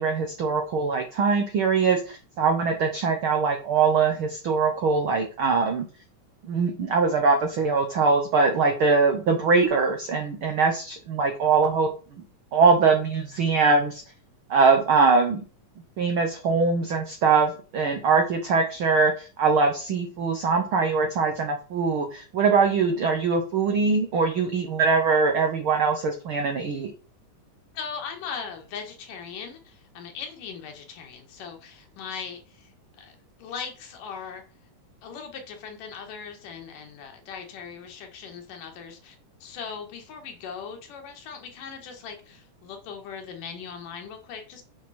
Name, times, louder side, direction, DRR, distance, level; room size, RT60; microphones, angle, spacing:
voice 1, 0.0-5.8 6.5-11.9 12.5-14.0 14.5-15.4 16.0-26.9, right 4 dB, 80° right, 1.2 m, -22 dB
voice 2, 27.7-32.7 33.0-33.1 33.4-34.4 35.0-44.6, left 6 dB, 75° left, 3.1 m, -39 dB
8.0 x 5.9 x 4.2 m
omnidirectional pair, 3.8 m